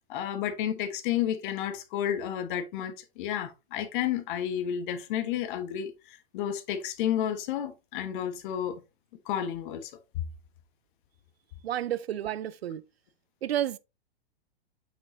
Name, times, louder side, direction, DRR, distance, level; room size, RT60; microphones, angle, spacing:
voice 1, 0.1-5.9 6.3-8.8 9.3-9.9, left 10 dB, 55° left, 1.4 m, -31 dB
voice 2, 11.6-12.8 13.4-13.8, right 11 dB, 75° right, 0.6 m, -31 dB
7.4 x 5.9 x 2.7 m
figure-of-eight pair, 100°, 31 cm